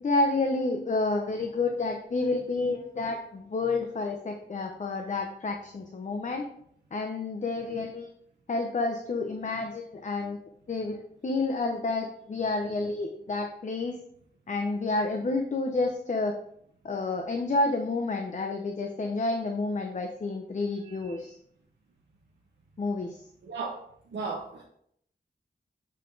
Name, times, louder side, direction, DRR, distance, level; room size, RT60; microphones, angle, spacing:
voice 1, 0.0-6.5 6.9-8.1 8.5-14.0 14.5-16.4 16.8-21.3 22.8-23.2, left 3 dB, 45° left, 3 dB, 0.7 m, -29 dB
voice 2, 23.5-23.8 24.1-24.6, right 4 dB, 90° right, -1 dB, 0.9 m, -34 dB
7.3 x 4.4 x 3.9 m, 0.68 s
wide cardioid pair, 115°, 18 cm